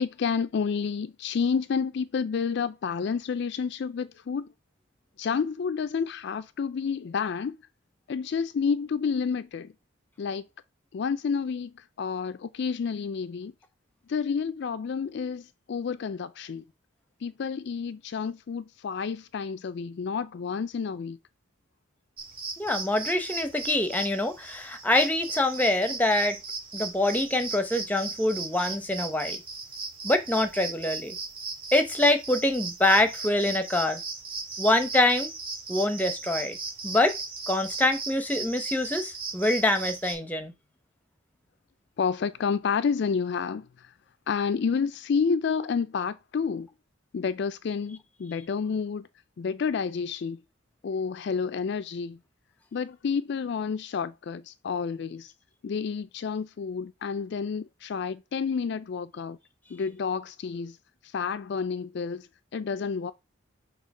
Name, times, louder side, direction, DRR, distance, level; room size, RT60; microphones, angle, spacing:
voice 1, 0.0-4.5 5.2-7.6 8.1-9.7 10.2-10.4 10.9-13.5 14.1-16.6 17.2-21.2 42.0-43.9 44.3-46.7 47.1-49.1 49.4-50.4 50.8-52.2 52.7-55.3 55.6-59.4 59.7-60.8 61.1-62.3 62.5-63.1, left 6 dB, 55° left, 0.3 m, -30 dB
sound 1, 22.2-40.1, right 4 dB, 25° right, 2.3 m, -37 dB
voice 2, 22.6-26.4 26.7-29.4 30.0-31.2 31.7-34.0 34.6-35.3 35.7-36.6 36.8-37.2 37.5-40.5, left 1 dB, 10° left, 0.8 m, -25 dB
6.3 x 2.9 x 5.3 m
head